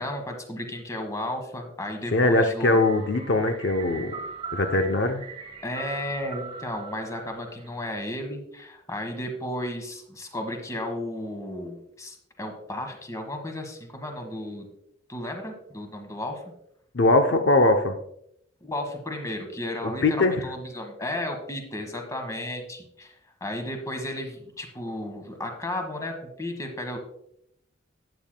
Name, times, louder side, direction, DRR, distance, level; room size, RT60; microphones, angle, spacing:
voice 1, 0.0-2.8 5.6-14.7 15.1-16.4 18.6-23.1 23.4-27.0, left 1 dB, 15° left, 5 dB, 1.4 m, -34 dB
voice 2, 2.1-4.1 4.5-5.2 16.9-17.9 19.8-20.5, left 2 dB, 65° left, 6 dB, 0.6 m, -21 dB
sound 1, 2.6-8.0, right 5 dB, 25° right, 1.4 m, -40 dB
12.5 x 9.0 x 2.2 m, 0.75 s
head